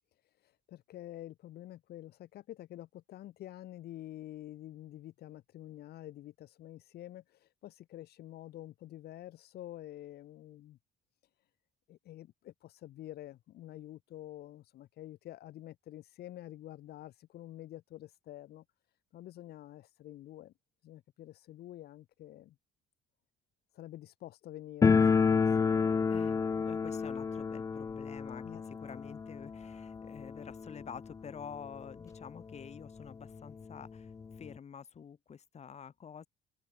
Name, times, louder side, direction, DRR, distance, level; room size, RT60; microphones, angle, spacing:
voice 1, 0.2-10.8 11.9-18.6 19.1-20.5 20.8-22.6 23.7-25.8 28.4-28.6, left 14 dB, 70° left, 3.8 m, -48 dB
sound 1, 24.8-31.5 31.8-31.9 32.1-32.2 33.0-33.1 33.4-34.6, left 5 dB, 20° left, 0.4 m, -30 dB
voice 2, 26.1-36.3, left 7 dB, 40° left, 7.7 m, -48 dB
open air
cardioid pair, 110°, 17 cm